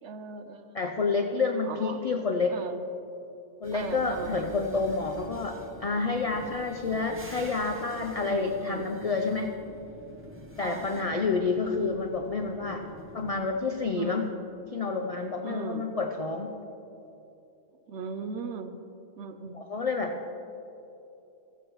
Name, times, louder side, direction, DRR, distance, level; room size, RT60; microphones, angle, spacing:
voice 1, 0.0-1.1 1.6-2.1 2.5-2.9 3.7-4.5 8.2-8.9 10.6-11.2 14.0-14.4 15.4-16.0 17.9-18.7 19.2-19.6, right 5 dB, 65° right, 8 dB, 0.8 m, -38 dB
voice 2, 0.7-2.6 3.6-9.5 10.6-12.8 13.1-14.2 14.7-16.5 19.5-20.3, left 4 dB, 70° left, 3 dB, 0.3 m, -29 dB
sound 1, 3.6-13.4, equal, 10° right, 0.7 m, -47 dB
15.0 x 7.9 x 3.1 m, 2.8 s
omnidirectional pair, 1.4 m